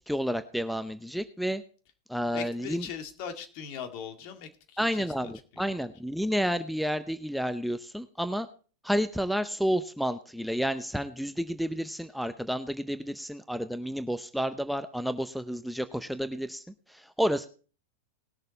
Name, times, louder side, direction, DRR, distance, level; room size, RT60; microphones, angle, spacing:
voice 1, 0.1-1.6 2.1-2.9 4.8-8.5 8.8-16.6 16.9-17.5, equal, ahead, 10 dB, 0.7 m, -30 dB
voice 2, 2.3-5.6, left 7 dB, 50° left, 7 dB, 2.0 m, -40 dB
19.5 x 6.6 x 4.0 m, 0.39 s
hypercardioid pair, 100°, 0 cm